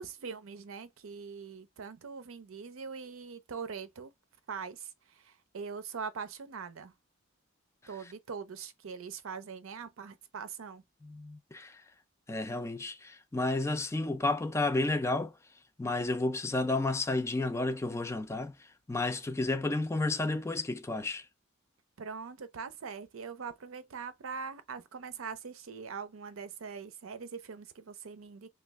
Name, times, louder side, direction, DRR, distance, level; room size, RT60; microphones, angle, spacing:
voice 1, 0.0-4.1 4.5-6.9 7.9-10.8 22.0-28.5, right 5 dB, 90° right, 0.5 m, -42 dB
voice 2, 11.0-11.8 12.3-15.4 15.8-21.3, left 2 dB, 15° left, 0.3 m, -31 dB
3.1 x 2.3 x 3.4 m
head